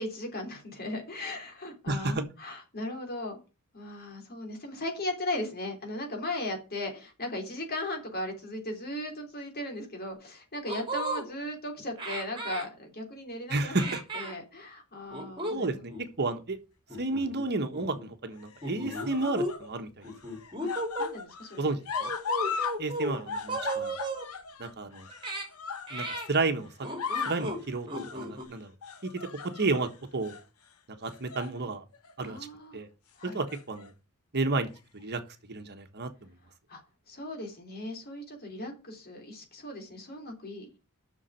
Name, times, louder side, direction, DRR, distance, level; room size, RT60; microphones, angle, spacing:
voice 1, 0.0-3.4 3.7-15.9 20.6-20.7 21.0-21.7 32.2-32.8 33.2-33.4 36.7-36.8 37.1-40.8, left 1 dB, 45° left, 3.4 m, -37 dB
voice 2, 1.9-2.2 13.5-14.0 15.5-15.9 16.2-16.6 17.0-19.9 21.6-22.1 22.8-23.9 24.6-25.0 25.9-26.7 27.2-27.9 28.1-28.7 29.0-29.1 29.6-30.4 31.0-31.8 32.2-32.4 32.7-32.9 33.2-33.9 34.3-34.7 34.9-35.2 35.5-36.1, right 3 dB, 50° right, 1.3 m, -31 dB
sound 1, 10.1-10.2 10.6-11.2 12.0-12.7 13.7-14.4 15.1-15.6 15.9-16.1 16.9-17.4 17.7-18.0 18.6-19.5 20.0-21.1 21.9-23.2 23.5-24.3 25.1-25.5 25.9-26.3 26.8-27.6 27.9-28.4, right 1 dB, 20° right, 2.7 m, -35 dB
sound 2, 16.9-17.5 18.4-19.7 20.0-22.8 23.0-26.5 26.8-27.5 27.9-28.2 28.8-29.8 30.2-30.4 31.1-31.6 31.9-32.1 33.2-33.9 34.8-34.9, left 5 dB, 70° left, 1.1 m, -37 dB
7.3 x 6.5 x 7.9 m
head